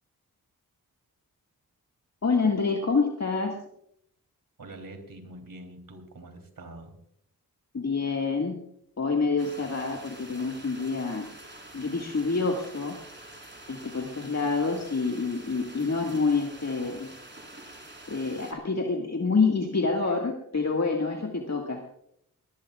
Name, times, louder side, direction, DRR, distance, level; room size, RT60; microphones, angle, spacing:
voice 1, 2.2-3.6 7.7-8.6 9.0-11.3 11.7-13.0 13.7-17.1 18.1-21.8, left 4 dB, 45° left, 1 dB, 2.0 m, -27 dB
voice 2, 4.6-6.9, right 1 dB, 65° right, 5 dB, 3.5 m, -45 dB
sound 1, 9.4-18.5, right 1 dB, 30° right, 4.6 m, -47 dB
19.5 x 19.5 x 2.4 m, 0.73 s
cardioid pair, 45°, 37 cm